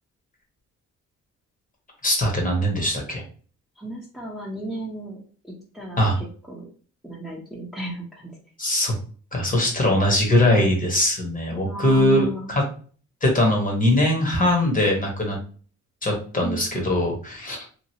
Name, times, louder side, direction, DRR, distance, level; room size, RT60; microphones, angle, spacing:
voice 1, 2.0-3.2 6.0-6.2 8.6-8.9 9.3-12.6 13.2-15.4 16.0-17.6, left 1 dB, 25° left, 0 dB, 1.1 m, -21 dB
voice 2, 3.8-5.2 5.4-6.7 7.0-8.3 11.6-12.5 16.4-16.6, right 1 dB, ahead, -4 dB, 0.9 m, -34 dB
2.9 x 2.6 x 2.8 m, 0.42 s
cardioid pair, 90°, 30 cm